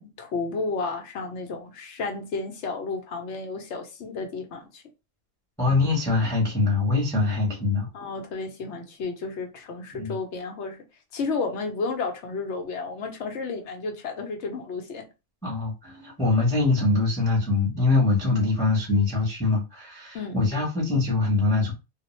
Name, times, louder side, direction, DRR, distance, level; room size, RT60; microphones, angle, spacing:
voice 1, 0.0-4.8 7.9-10.8 11.1-15.1 20.1-20.3, left 4 dB, 65° left, 0.9 m, -32 dB
voice 2, 5.6-7.9 10.0-10.2 15.4-21.7, left 3 dB, 5° left, 0.7 m, -23 dB
2.4 x 2.1 x 3.0 m
omnidirectional pair, 1.3 m